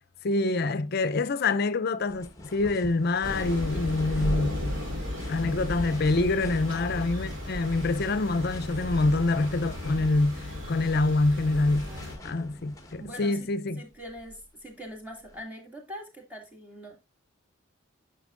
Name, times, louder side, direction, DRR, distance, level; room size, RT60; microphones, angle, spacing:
voice 1, 0.2-4.8 5.3-10.4 10.7-11.9 12.2-13.8, left 2 dB, 50° left, 0.5 m, -26 dB
sound 1, 2.1-13.3 13.9-15.4, left 1 dB, 15° left, 1.2 m, -46 dB
Thunder / Rain, 3.2-12.1, left 1 dB, 65° right, 2.5 m, -34 dB
voice 2, 11.5-12.3 13.0-13.5 13.8-17.0, equal, 5° right, 1.9 m, -43 dB
9.7 x 5.9 x 2.4 m
head